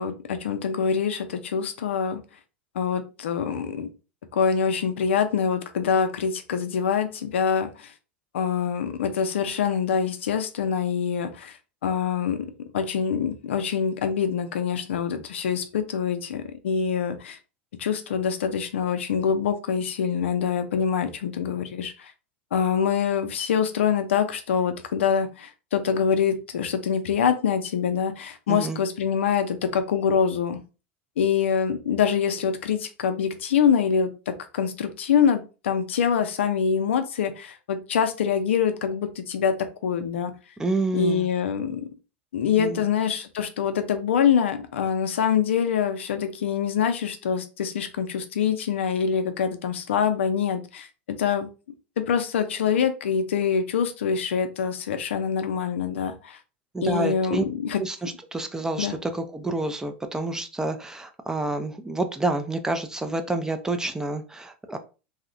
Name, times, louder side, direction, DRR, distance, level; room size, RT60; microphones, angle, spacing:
voice 1, 0.0-2.2 2.8-3.9 4.3-7.9 8.3-11.5 11.8-12.4 12.7-17.4 17.8-22.1 22.5-30.6 31.2-34.1 34.5-39.5 39.8-40.3 40.9-41.8 42.3-50.9 51.2-51.5 52.0-56.4 56.8-57.8 58.8-59.0, left 7 dB, 85° left, 8 dB, 0.4 m, -25 dB
voice 2, 28.5-28.8 40.6-41.3 42.6-42.8 56.7-57.4 57.8-64.8, right 2 dB, 10° right, 7 dB, 0.4 m, -28 dB
2.7 x 2.0 x 2.5 m, 0.32 s
hypercardioid pair, 110°, 6 cm